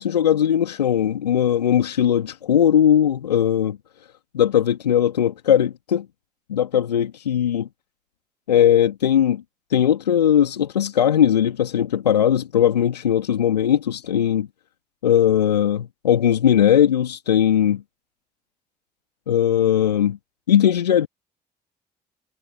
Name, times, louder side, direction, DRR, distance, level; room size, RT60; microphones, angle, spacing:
voice 1, 0.0-3.8 4.3-6.1 6.5-7.7 8.5-9.4 9.7-14.5 15.0-17.8 19.3-20.2 20.5-21.1, left 10 dB, 80° left, 2.8 m, -19 dB
figure-of-eight pair, 45°, 21 cm